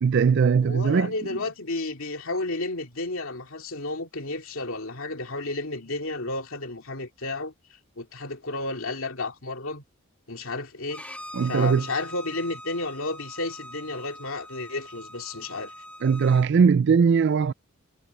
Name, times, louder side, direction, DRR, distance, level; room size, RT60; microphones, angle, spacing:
voice 1, 0.0-1.1 11.3-11.8 16.0-17.5, right 6 dB, 50° right, 0.3 m, -20 dB
voice 2, 0.6-9.8 10.3-11.0 11.4-15.7, left 2 dB, 65° left, 2.8 m, -32 dB
Bowed string instrument, 10.9-16.5, equal, 5° left, 2.5 m, -42 dB
head